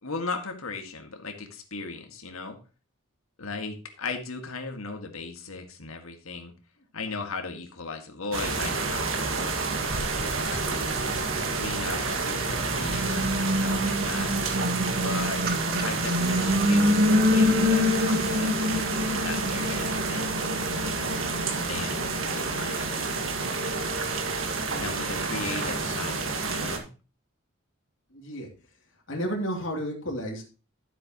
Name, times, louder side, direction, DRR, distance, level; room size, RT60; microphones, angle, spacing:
voice 1, 0.0-2.6 3.4-6.5 6.9-9.3 10.5-11.1 11.5-14.3 15.0-15.4 15.8-20.4 21.6-23.2 24.7-26.9, left 4 dB, 85° left, 5 dB, 1.9 m, -37 dB
sound 1, 8.3-26.8, right 4 dB, 70° right, 1.8 m, -29 dB
sound 2, 9.8-12.1 12.7-24.0, left 1 dB, 45° right, 1.1 m, -27 dB
voice 2, 28.1-28.5 29.1-30.4, equal, 60° left, 0 dB, 2.9 m, -31 dB
12.0 x 7.8 x 3.0 m, 0.33 s
head